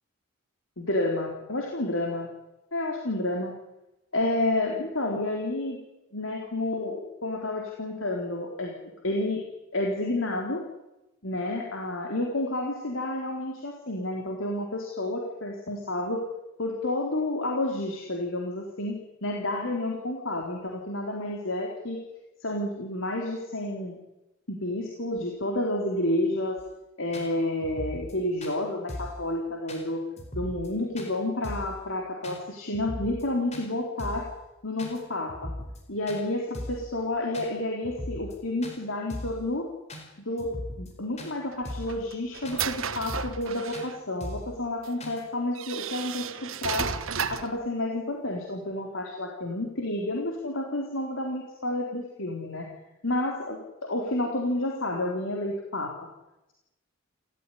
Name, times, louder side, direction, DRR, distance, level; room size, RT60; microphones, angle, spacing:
voice 1, 0.8-2.3 2.7-3.5 4.1-5.8 6.1-8.7 9.0-9.4 9.7-10.6 11.2-16.2 16.6-19.0 19.2-22.0 22.4-24.0 24.5-26.6 27.0-30.0 30.3-34.3 34.6-35.5 35.9-39.7 40.2-46.9 47.3-52.7 53.0-55.9, left 1 dB, 75° left, 0 dB, 3.8 m, -30 dB
sound 1, 26.6-26.7 27.1-27.3 27.6-28.1 28.4-28.6 28.9-29.2 29.7-29.8 30.2-30.7 31.0-31.1 31.4-31.7 32.2-32.4 32.7-33.2 33.5-33.7 34.0-34.3 34.8-35.0 35.3-35.8 36.1-36.2 36.5-36.9 37.3-37.5 37.8-38.4 38.6-38.8 39.1-39.4 39.9-40.0 40.4-40.9 41.2-41.3 41.7-42.0 42.4-42.6 42.9-43.5 43.7-43.9 44.2-44.5 45.0-45.2, left 1 dB, 35° left, 4.7 m, -38 dB
sound 2, 41.5-44.0 44.8-44.9 45.6-47.6, right 7 dB, 80° right, 1.4 m, -33 dB
28.5 x 14.5 x 10.0 m, 0.98 s
head